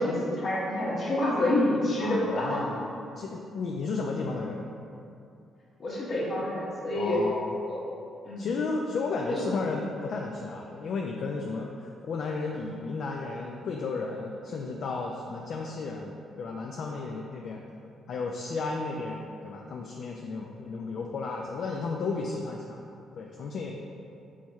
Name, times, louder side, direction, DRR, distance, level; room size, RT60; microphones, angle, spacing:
voice 1, 0.0-2.6 5.8-7.2 7.7-7.8 8.3-8.5 9.3-9.5, left 1 dB, 50° left, -5 dB, 1.1 m, -28 dB
voice 2, 2.0-4.6 6.9-7.6 8.4-17.6 18.1-22.8 23.2-23.7, left 4 dB, 65° left, 0 dB, 0.3 m, -33 dB
4.5 x 4.2 x 2.3 m, 2.6 s
cardioid pair, 90°, 0 cm